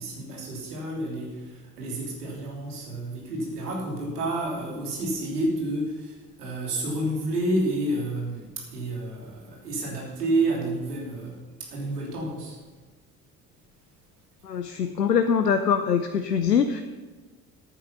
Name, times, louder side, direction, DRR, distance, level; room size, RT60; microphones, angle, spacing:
voice 1, 0.0-12.6, right 1 dB, 75° right, -2 dB, 3.1 m, -30 dB
voice 2, 14.4-16.8, left 7 dB, 85° left, 9 dB, 0.6 m, -23 dB
13.5 x 9.0 x 5.6 m, 1.3 s
figure-of-eight pair, 55°, 47 cm